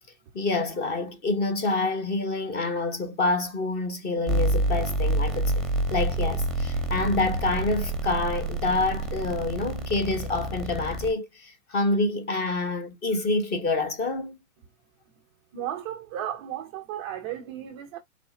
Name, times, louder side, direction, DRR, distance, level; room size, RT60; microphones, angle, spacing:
voice 1, 0.3-5.6 5.9-14.4, left 3 dB, 20° left, 1.0 m, -27 dB
sound 1, 4.3-11.1, right 2 dB, ahead, 1.0 m, -28 dB
voice 2, 15.5-18.0, right 11 dB, 20° right, 0.4 m, -34 dB
5.3 x 3.4 x 2.6 m
hypercardioid pair, 130°, 45 cm